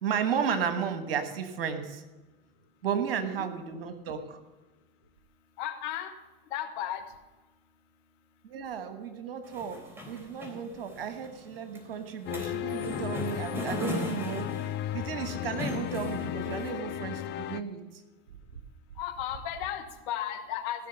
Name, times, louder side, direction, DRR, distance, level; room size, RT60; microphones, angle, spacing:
voice 1, 0.0-2.0 2.8-4.4 8.4-9.8 10.0-14.5 14.9-17.8, right 7 dB, 75° right, 8 dB, 1.4 m, -33 dB
voice 2, 2.9-3.3 5.6-6.1 6.5-7.0 19.0-20.9, left 11 dB, 60° left, 8 dB, 1.5 m, -35 dB
sound 1, 9.4-16.7, left 1 dB, 10° right, 3.8 m, -39 dB
sound 2, 12.3-17.6, left 12 dB, 40° left, 0.5 m, -35 dB
15.5 x 6.3 x 6.6 m, 1.1 s
hypercardioid pair, 80°, 29 cm